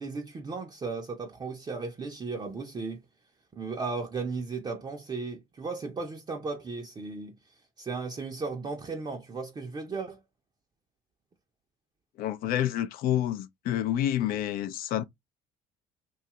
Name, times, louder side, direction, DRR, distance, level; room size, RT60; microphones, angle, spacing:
voice 1, 0.0-3.0 3.5-7.3 7.8-10.2, right 4 dB, 25° right, 0.6 m, -35 dB
voice 2, 12.2-15.0, left 11 dB, 60° left, 0.5 m, -28 dB
2.6 x 2.3 x 2.9 m
hypercardioid pair, 70°, 17 cm